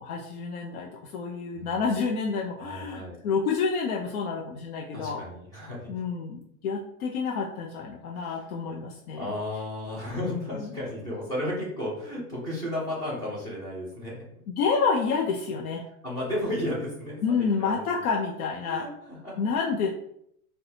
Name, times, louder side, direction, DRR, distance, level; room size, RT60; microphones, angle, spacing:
voice 1, 0.0-5.2 5.9-9.3 10.2-10.8 14.5-15.9 17.2-18.9 19.4-19.9, left 5 dB, 75° left, 0 dB, 0.6 m, -29 dB
voice 2, 2.6-3.2 4.9-5.9 8.4-8.5 9.2-14.2 16.0-18.0 18.6-19.4, left 1 dB, 10° left, -6 dB, 0.4 m, -34 dB
4.0 x 2.3 x 2.7 m, 0.71 s
supercardioid pair, 160°, 43 cm